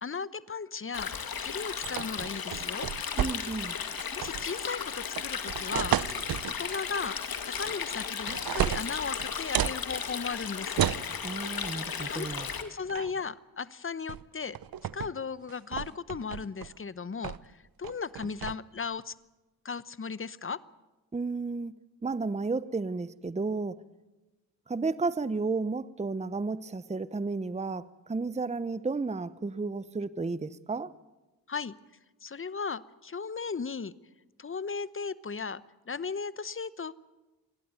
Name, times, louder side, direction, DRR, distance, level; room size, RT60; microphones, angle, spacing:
voice 1, 0.0-1.1 1.4-2.9 4.1-6.0 6.6-7.2 7.4-10.9 12.1-12.3 12.6-14.6 14.9-17.5 17.8-19.1 19.6-20.6 31.5-31.7 32.2-33.9 34.4-36.9, left 5 dB, 30° left, 18 dB, 1.0 m, -36 dB
Stream, 0.9-12.6, left 7 dB, 60° left, 2.3 m, -35 dB
sound 1, 1.8-3.7 4.0-4.5 5.2-6.6 7.6-8.0 8.3-9.8 10.8-11.1 12.4-12.6 12.9-13.2 14.1-14.2 14.6-15.1 15.5-16.7 17.2-17.5 17.8-18.5, right 11 dB, 60° right, 0.8 m, -32 dB
voice 2, 3.2-3.8 11.2-12.5 21.1-21.7 22.0-23.8 24.7-30.9, right 3 dB, 15° right, 17 dB, 0.8 m, -32 dB
28.0 x 12.0 x 9.3 m, 1.1 s
supercardioid pair, 50°, 39 cm